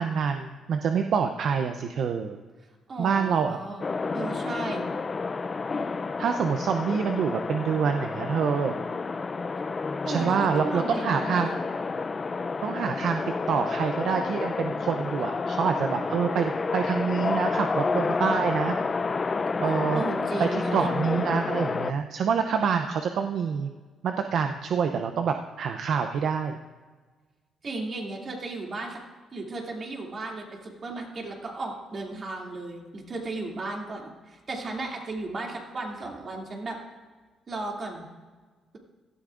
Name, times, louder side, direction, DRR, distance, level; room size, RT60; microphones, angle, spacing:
voice 1, 0.0-2.4 3.0-3.6 6.2-8.8 10.1-11.5 12.6-13.2 13.5-18.8 19.6-20.0 20.4-23.7 24.0-26.6, right 6 dB, 65° right, 6 dB, 0.6 m, -26 dB
voice 2, 2.9-3.9 4.1-4.9 10.0-11.6 19.9-20.8 27.6-29.0 29.3-36.8 37.5-38.0, right 2 dB, 45° right, 0 dB, 2.5 m, -35 dB
sound 1, 3.8-21.9, left 4 dB, 35° left, 0.4 m, -30 dB
17.0 x 13.0 x 2.5 m, 1.4 s
cardioid pair, 90°, 0 cm